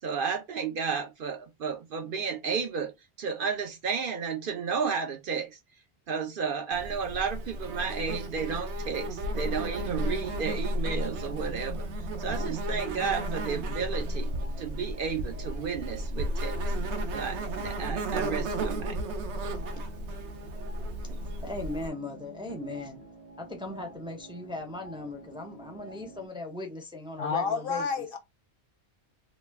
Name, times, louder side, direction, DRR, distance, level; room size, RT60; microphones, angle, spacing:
voice 1, 0.0-5.6 6.1-14.3 14.6-16.6 17.1-19.0, right 6 dB, 60° right, 0.7 m, -32 dB
Insect, 6.7-21.9, right 1 dB, 80° right, 1.0 m, -33 dB
sound 1, 9.3-26.3, right 3 dB, 40° right, 1.0 m, -48 dB
voice 2, 21.4-23.0 23.4-28.0, left 2 dB, 5° right, 0.4 m, -38 dB
voice 3, 27.2-28.2, left 5 dB, 65° left, 0.7 m, -29 dB
3.0 x 2.1 x 3.3 m
omnidirectional pair, 1.1 m